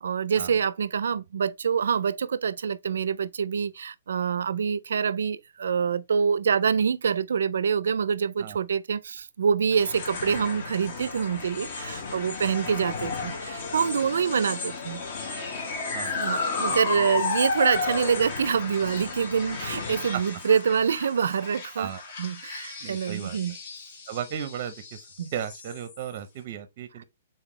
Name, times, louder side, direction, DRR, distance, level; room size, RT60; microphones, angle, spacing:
voice 1, 0.0-15.0 16.1-21.9 22.2-23.5 25.2-25.3, right 6 dB, 85° right, 0.4 m, -26 dB
sound 1, 9.7-26.2, left 4 dB, 40° left, 1.0 m, -33 dB
voice 2, 15.9-16.3 16.7-17.2 20.1-20.2 21.8-22.0 22.8-23.6 24.1-25.1 25.3-27.0, right 9 dB, 35° right, 0.6 m, -36 dB
4.0 x 3.8 x 3.1 m
hypercardioid pair, 175°, 0 cm